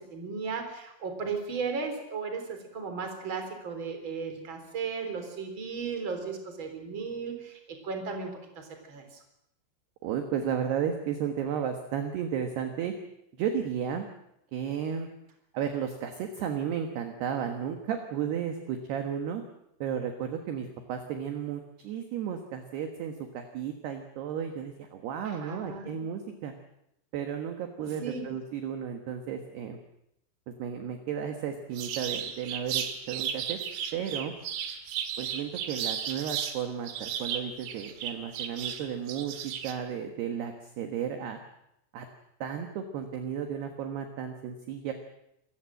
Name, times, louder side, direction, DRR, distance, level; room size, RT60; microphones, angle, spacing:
voice 1, 0.0-9.2 25.2-26.0 27.8-28.3, right 5 dB, 25° right, 5 dB, 3.7 m, -36 dB
voice 2, 10.0-12.9 13.4-14.1 14.5-15.1 15.5-19.4 19.8-26.5 27.1-29.8 30.5-33.6 33.9-34.3 35.2-41.4 41.9-42.1 42.4-44.9, right 8 dB, 65° right, 5 dB, 3.1 m, -33 dB
sound 1, 31.8-36.6 36.9-39.7, right 9 dB, 85° right, 4.5 m, -34 dB
26.5 x 15.0 x 7.7 m, 0.82 s
omnidirectional pair, 5.9 m